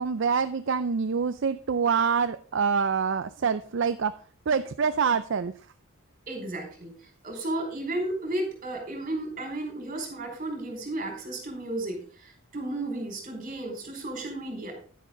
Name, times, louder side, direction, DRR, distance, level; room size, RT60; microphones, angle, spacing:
voice 1, 0.0-4.1 4.5-5.5, right 6 dB, 60° right, 12 dB, 0.5 m, -26 dB
voice 2, 6.3-6.9 7.2-14.7, right 1 dB, 40° right, 1 dB, 4.9 m, -33 dB
11.5 x 9.3 x 3.8 m, 0.44 s
head